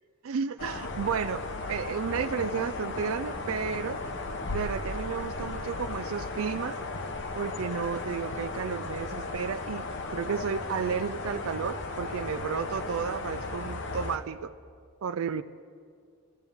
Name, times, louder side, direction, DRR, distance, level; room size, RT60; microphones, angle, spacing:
voice 1, 0.2-4.0 4.5-6.8 7.4-9.8 10.1-14.5 15.0-15.4, right 6 dB, 75° right, 12 dB, 0.4 m, -32 dB
sound 1, 0.6-14.2, left 3 dB, 55° left, 0.9 m, -35 dB
23.5 x 14.5 x 3.5 m, 2.3 s
head